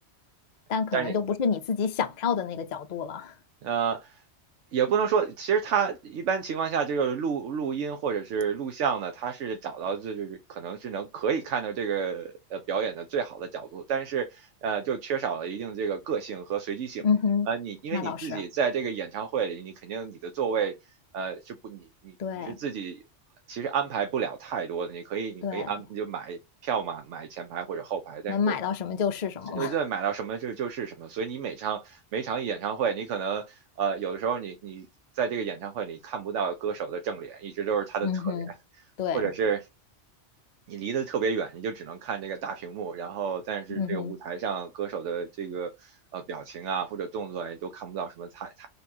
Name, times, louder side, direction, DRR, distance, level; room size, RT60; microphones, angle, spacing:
voice 1, 0.7-3.3 17.0-17.5 17.9-18.4 22.2-22.6 25.4-25.7 28.3-29.8 38.0-38.5 39.0-39.3 43.8-44.2, left 6 dB, 45° left, 0.6 m, -28 dB
voice 2, 3.6-4.2 4.7-17.0 17.5-20.7 21.1-23.0 23.5-28.5 29.5-34.9 35.1-38.5 39.1-39.7 40.7-48.7, right 6 dB, 85° right, 1.0 m, -31 dB
4.3 x 3.4 x 2.7 m
omnidirectional pair, 1.2 m